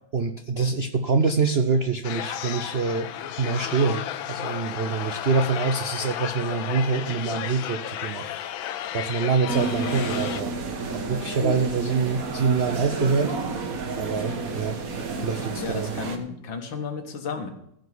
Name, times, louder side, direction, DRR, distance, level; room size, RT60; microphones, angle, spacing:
voice 1, 0.1-3.1 3.4-4.0 4.3-10.5 10.9-13.3 14.0-14.8 15.2-15.9, right 4 dB, 75° right, 8 dB, 0.5 m, -25 dB
sound 1, 2.0-10.4, left 11 dB, 85° left, 1.5 m, -33 dB
sound 2, 9.5-16.2, right 3 dB, 45° right, 1.7 m, -31 dB
voice 2, 15.6-17.5, left 5 dB, 70° left, 5 dB, 2.3 m, -32 dB
15.5 x 5.2 x 7.9 m, 0.76 s
omnidirectional pair, 2.2 m